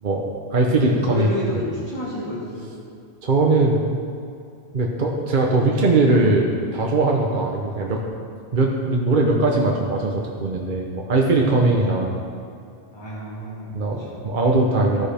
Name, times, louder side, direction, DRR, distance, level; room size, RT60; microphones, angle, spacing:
voice 1, 0.0-1.6 3.2-3.8 4.7-8.0 8.5-12.1 13.7-15.1, right 2 dB, 45° right, 0 dB, 1.0 m, -20 dB
voice 2, 0.6-2.7 11.7-11.9 12.9-14.2, left 1 dB, 25° left, -7 dB, 1.7 m, -30 dB
13.0 x 9.9 x 3.5 m, 2.4 s
omnidirectional pair, 1.2 m